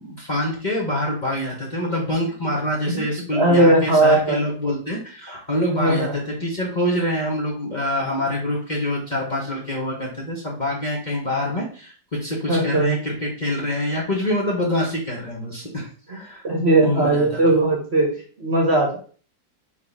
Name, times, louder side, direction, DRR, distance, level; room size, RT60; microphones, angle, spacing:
voice 1, 0.0-16.5 16.8-17.4, left 1 dB, 25° left, -3 dB, 1.3 m, -26 dB
voice 2, 3.4-4.4 5.7-6.2 12.5-12.9 16.4-18.1 18.4-19.0, right 2 dB, 40° right, 0 dB, 1.3 m, -18 dB
4.9 x 3.5 x 5.6 m, 0.41 s
omnidirectional pair, 2.0 m